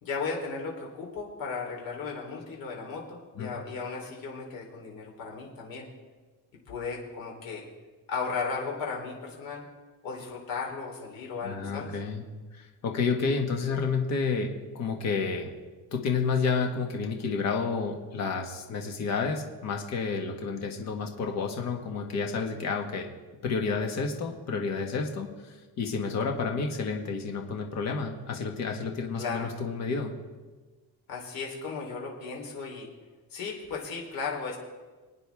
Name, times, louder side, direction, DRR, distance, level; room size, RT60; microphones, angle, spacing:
voice 1, 0.0-5.9 6.7-7.6 8.1-9.6 10.0-11.9 29.1-29.5 31.1-32.9 33.3-34.6, left 4 dB, 60° left, -1 dB, 3.7 m, -35 dB
voice 2, 11.4-12.2 12.5-15.5 15.9-23.1 23.4-25.3 25.8-30.1, left 5 dB, 45° left, 2 dB, 1.6 m, -30 dB
27.0 x 9.2 x 3.6 m, 1.3 s
cardioid pair, 175°, 38 cm